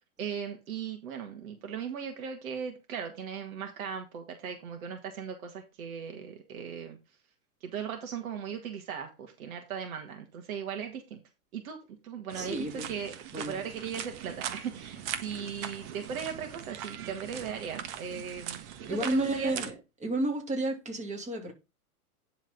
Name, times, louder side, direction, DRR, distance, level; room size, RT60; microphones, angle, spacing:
voice 1, 0.2-7.0 7.6-11.2 11.5-18.6 18.9-19.5, right 7 dB, 65° right, 2.0 m, -38 dB
voice 2, 12.3-12.9 13.3-13.5 18.9-19.7 20.0-21.5, right 1 dB, 15° right, 2.8 m, -31 dB
sound 1, 12.3-19.7, right 9 dB, 50° right, 1.4 m, -40 dB
10.5 x 4.1 x 5.2 m
hypercardioid pair, 115°, 45 cm